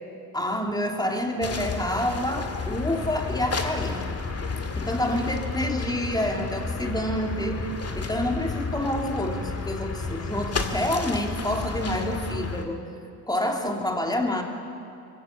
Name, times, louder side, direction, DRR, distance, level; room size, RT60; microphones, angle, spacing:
voice 1, 0.3-4.0 4.7-12.8 13.3-14.4, left 1 dB, 10° left, 2 dB, 3.0 m, -28 dB
sound 1, 1.4-12.6, left 4 dB, 35° left, 2.1 m, -31 dB
23.0 x 16.5 x 6.8 m, 2.7 s
supercardioid pair, 60°, 44 cm